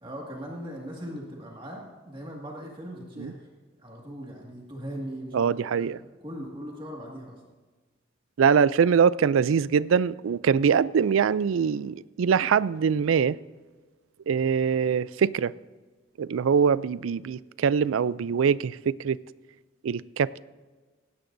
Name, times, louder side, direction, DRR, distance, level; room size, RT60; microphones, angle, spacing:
voice 1, 0.0-3.5 3.8-7.4, equal, 25° right, 2.0 m, -39 dB
voice 2, 5.3-6.0 8.4-13.4 14.3-15.5 16.2-19.2 19.8-20.3, right 6 dB, 90° right, 0.4 m, -23 dB
17.0 x 17.0 x 2.6 m
head